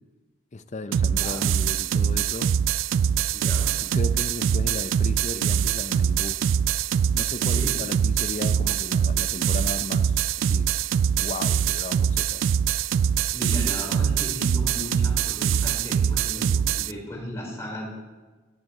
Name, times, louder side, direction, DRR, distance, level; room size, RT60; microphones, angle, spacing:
voice 1, 0.5-2.6 3.8-6.4 7.1-10.7 11.2-12.4, left 2 dB, 35° left, 11 dB, 0.7 m, -35 dB
sound 1, 0.9-16.9, right 8 dB, 80° right, 0.3 m, -23 dB
voice 2, 3.3-3.7 7.4-7.8 13.3-17.9, left 1 dB, 15° left, -3 dB, 4.8 m, -36 dB
13.0 x 8.5 x 8.5 m, 1.2 s
head